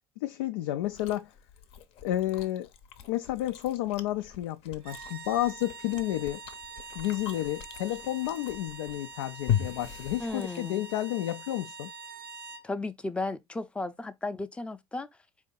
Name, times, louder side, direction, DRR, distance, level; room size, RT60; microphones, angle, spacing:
voice 1, 0.2-1.3 2.0-2.7 3.1-6.4 7.0-11.9, left 14 dB, 80° left, 0.4 m, -31 dB
Chewing mastication, 0.8-11.0, left 9 dB, 60° left, 0.7 m, -38 dB
sound 1, 4.8-12.7, right 4 dB, 85° right, 0.9 m, -45 dB
voice 2, 10.2-10.9 12.6-15.1, left 2 dB, 10° left, 0.5 m, -34 dB
4.3 x 2.6 x 3.8 m
hypercardioid pair, 80°, 12 cm